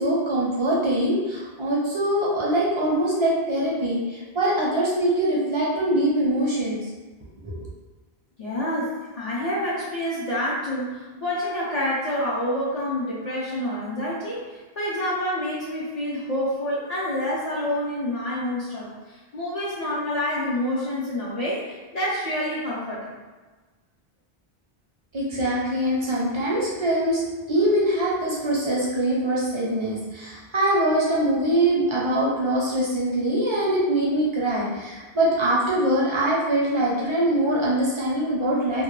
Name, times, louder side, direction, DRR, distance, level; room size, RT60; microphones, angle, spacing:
voice 1, 0.0-6.8 7.4-7.7 25.1-27.2 27.5-38.8, right 1 dB, 40° right, -6 dB, 0.5 m, -23 dB
voice 2, 8.4-23.2, left 1 dB, 50° left, -8 dB, 0.5 m, -28 dB
2.1 x 2.1 x 3.0 m, 1.3 s
omnidirectional pair, 1.0 m